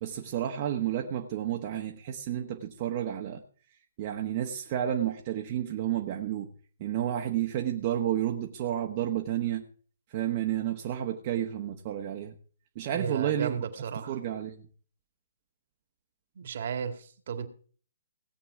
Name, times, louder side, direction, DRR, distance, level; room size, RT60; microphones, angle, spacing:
voice 1, 0.0-3.4 4.0-6.5 6.8-9.6 10.1-12.3 12.7-13.6 14.1-14.6, right 11 dB, 40° right, 3 dB, 1.3 m, -31 dB
voice 2, 12.9-14.2 16.4-17.5, right 7 dB, 55° right, 8 dB, 2.0 m, -34 dB
17.5 x 8.5 x 4.8 m, 0.43 s
figure-of-eight pair, 130°, 0 cm